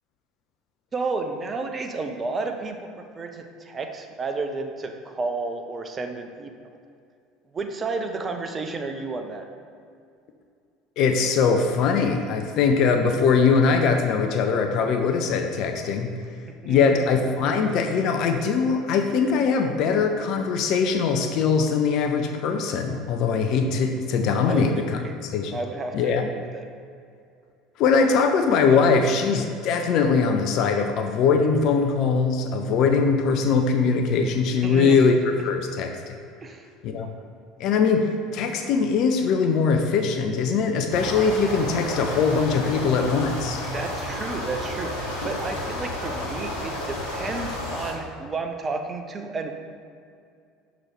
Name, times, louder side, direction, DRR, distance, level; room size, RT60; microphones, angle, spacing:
voice 1, 0.9-6.5 7.5-9.5 16.6-17.0 24.4-25.2 25.5-26.6 34.6-35.0 36.4-36.7 43.7-49.5, right 3 dB, 25° right, 5 dB, 0.6 m, -32 dB
voice 2, 11.0-16.1 16.7-25.0 25.3-25.6 25.9-26.3 27.8-36.2 36.8-37.1 37.6-43.6, left 5 dB, 50° left, 5 dB, 0.4 m, -21 dB
sound 1, 40.9-47.9, left 1 dB, 70° left, 1.1 m, -31 dB
6.3 x 3.8 x 4.9 m, 2.4 s
figure-of-eight pair, 65°, 0 cm